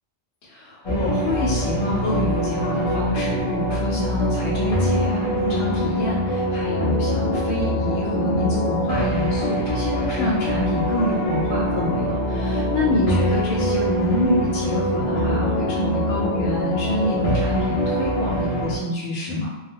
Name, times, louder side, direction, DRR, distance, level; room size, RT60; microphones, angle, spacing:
voice 1, 0.4-19.5, left 2 dB, 75° left, -6 dB, 0.9 m, -26 dB
sound 1, 0.8-18.8, equal, 40° left, 0.6 m, -23 dB
2.4 x 2.2 x 3.4 m, 1.1 s
omnidirectional pair, 1.2 m